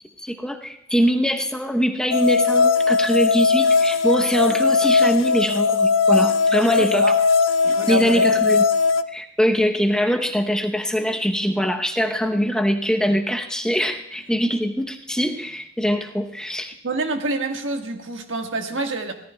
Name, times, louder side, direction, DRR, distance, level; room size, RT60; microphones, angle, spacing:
voice 1, 0.2-7.1 7.6-8.6 9.1-16.7, equal, 5° left, 3 dB, 0.8 m, -22 dB
sound 1, 2.1-9.0, left 4 dB, 90° left, 0.5 m, -19 dB
voice 2, 6.8-7.2 7.6-8.3 16.8-19.1, right 3 dB, 85° right, 4 dB, 1.5 m, -27 dB
24.5 x 17.0 x 2.2 m, 0.74 s
head